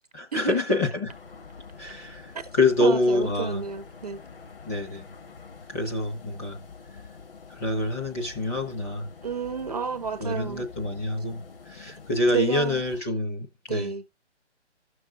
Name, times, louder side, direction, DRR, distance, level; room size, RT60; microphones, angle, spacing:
voice 1, 0.1-1.2 1.8-3.6 4.7-5.1 5.7-6.6 7.5-9.1 10.2-11.4 11.7-13.9, left 2 dB, 15° left, 0.7 m, -26 dB
sound 1, 1.1-13.0, left 5 dB, 50° left, 1.9 m, -46 dB
voice 2, 2.8-4.2 9.2-10.6 12.3-12.8 13.7-14.0, right 6 dB, 35° right, 0.5 m, -31 dB
15.5 x 6.3 x 2.4 m
figure-of-eight pair, 150°, 35 cm